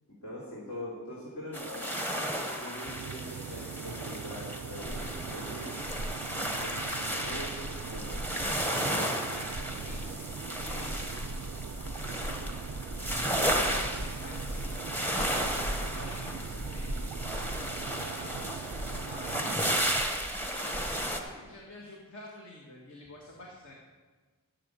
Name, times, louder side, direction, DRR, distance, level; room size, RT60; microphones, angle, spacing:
voice 1, 0.2-2.1 2.6-5.8 6.6-8.2 13.5-13.8, equal, 70° left, -7 dB, 3.4 m, -43 dB
sound 1, 1.5-21.2, equal, 10° left, 1.1 m, -33 dB
sound 2, 2.8-20.0, right 7 dB, 80° right, 0.3 m, -42 dB
voice 2, 8.1-11.2 11.9-12.6 13.5-14.8 15.9-17.3 17.8-18.5 18.9-19.7 20.5-23.7, left 1 dB, 55° left, -2 dB, 1.8 m, -49 dB
13.5 x 6.9 x 8.1 m, 1.4 s
head